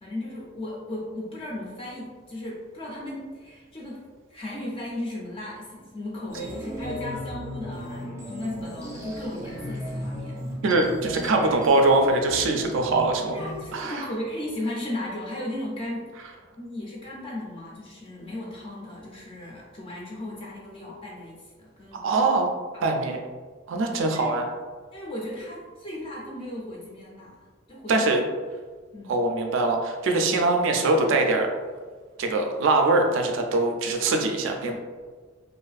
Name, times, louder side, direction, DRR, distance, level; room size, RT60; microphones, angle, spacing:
voice 1, 0.0-4.0 4.3-10.4 11.4-11.5 13.3-16.1 16.6-22.2 23.0-23.1 24.0-24.4 24.9-27.4 27.7-28.2 28.9-29.2, left 1 dB, 25° left, -4 dB, 0.4 m, -36 dB
sound 1, 6.3-13.8, equal, 15° right, 0.6 m, -36 dB
voice 2, 10.6-13.4 13.7-14.1 21.9-22.5 22.8-23.2 23.7-24.5 27.9-28.2 29.1-31.5 32.2-34.8, right 2 dB, 65° right, 3 dB, 0.3 m, -22 dB
2.4 x 2.4 x 2.3 m, 1.5 s
head